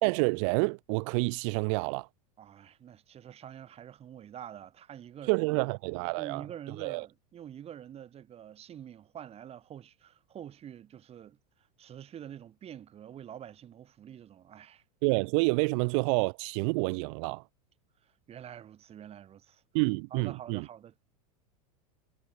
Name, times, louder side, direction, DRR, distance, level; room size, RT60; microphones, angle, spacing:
voice 1, 0.0-2.1 5.3-6.4 6.8-7.1 15.0-17.4 19.7-20.7, right 35 dB, 50° right, 0.4 m, -28 dB
voice 2, 2.4-5.7 6.2-11.4 11.8-14.8 18.0-19.6 20.1-21.1, right 10 dB, 30° right, 3.6 m, -46 dB
hypercardioid pair, 115°, 20 cm